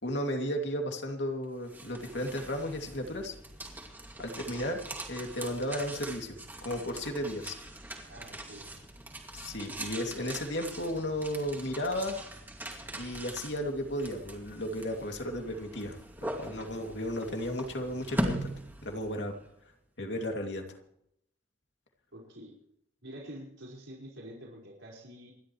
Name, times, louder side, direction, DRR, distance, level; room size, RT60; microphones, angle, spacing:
voice 1, 0.0-3.4 4.2-6.4 6.6-7.6 9.3-12.2 13.0-18.4 18.8-19.3 20.0-20.8, equal, 70° left, 3 dB, 2.6 m, -34 dB
sound 1, 1.4-19.4, right 1 dB, 10° right, 2.4 m, -41 dB
voice 2, 4.2-4.6 8.1-8.7 22.1-22.5 23.0-25.3, equal, 85° right, -3 dB, 5.1 m, -47 dB
28.0 x 11.5 x 3.2 m, 0.74 s
head